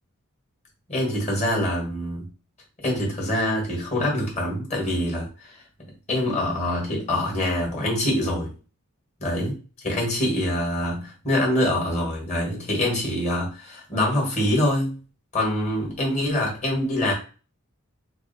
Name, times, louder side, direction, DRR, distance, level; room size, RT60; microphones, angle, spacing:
voice 1, 0.9-2.3 2.8-5.6 6.1-8.5 9.2-9.5 9.8-15.0 15.3-17.1, left 1 dB, 30° left, -2 dB, 1.7 m, -25 dB
4.3 x 2.1 x 4.2 m, 0.35 s
head